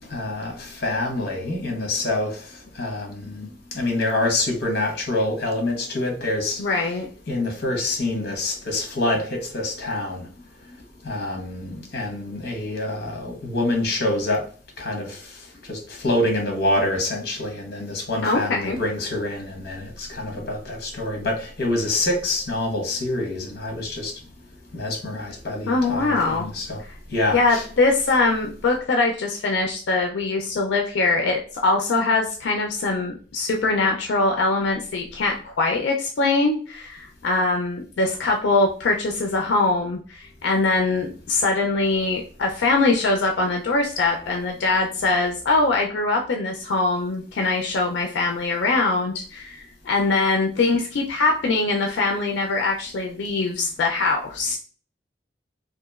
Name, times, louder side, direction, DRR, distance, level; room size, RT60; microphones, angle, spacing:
voice 1, 0.1-2.3 2.8-3.5 3.7-6.6 7.3-10.2 11.0-14.4 14.8-15.2 15.7-24.1 24.7-26.8 27.1-27.7, left 2 dB, 60° left, 0.9 m, -26 dB
voice 2, 6.6-7.1 18.2-18.8 25.7-26.5 27.3-54.6, left 3 dB, 90° left, 0.4 m, -22 dB
2.9 x 2.4 x 2.3 m
head